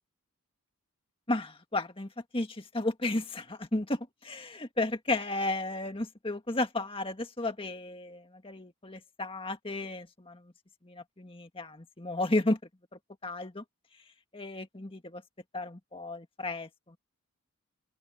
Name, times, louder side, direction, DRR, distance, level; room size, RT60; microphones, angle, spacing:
voice 1, 1.3-10.5 10.8-12.6 13.2-13.6 14.3-15.2 15.5-17.0, left 2 dB, 25° left, 1.8 m, -33 dB
open air
head